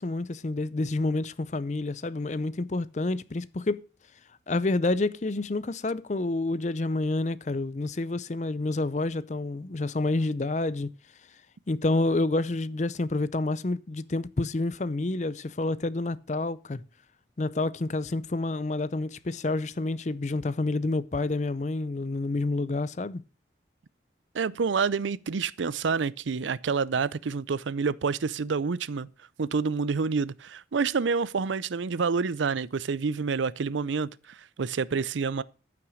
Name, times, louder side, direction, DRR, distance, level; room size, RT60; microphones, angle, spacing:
voice 1, 0.0-3.8 4.5-10.9 11.7-16.8 17.4-23.2, left 2 dB, 40° left, 0.5 m, -28 dB
voice 2, 24.3-29.1 29.4-35.4, right 5 dB, 85° right, 0.5 m, -28 dB
14.0 x 6.0 x 6.3 m
head